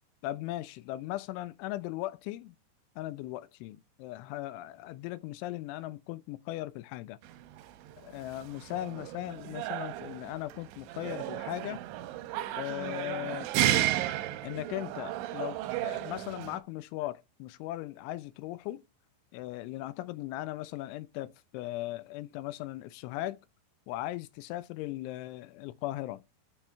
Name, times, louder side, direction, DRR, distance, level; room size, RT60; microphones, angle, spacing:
voice 1, 0.2-2.5 3.0-7.2 8.0-11.8 12.6-13.5 14.4-18.8 19.3-23.4 23.9-26.2, left 16 dB, 85° left, 2.9 m, -38 dB
sound 1, 7.2-16.6, right 13 dB, 85° right, 2.8 m, -34 dB
13.0 x 4.5 x 3.4 m
omnidirectional pair, 5.6 m